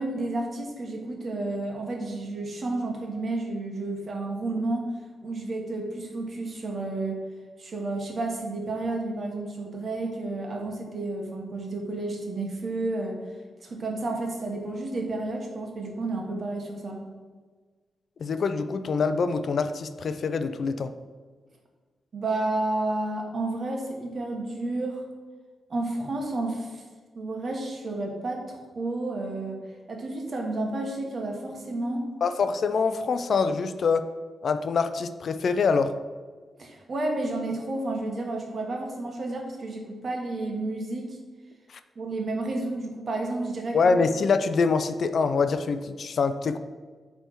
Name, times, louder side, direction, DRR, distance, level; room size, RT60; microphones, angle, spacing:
voice 1, 0.0-4.9 5.2-7.2 7.6-13.2 13.6-17.0 22.1-25.1 25.7-26.8 27.1-29.6 29.9-32.1 36.6-41.2 41.9-43.9, right 2 dB, 45° right, 1 dB, 1.3 m, -31 dB
voice 2, 18.2-20.9 32.2-34.0 34.4-35.9 41.7-41.8 43.7-46.6, left 5 dB, 60° left, 10 dB, 0.4 m, -25 dB
8.8 x 3.4 x 4.5 m, 1.4 s
cardioid pair, 105°, 0 cm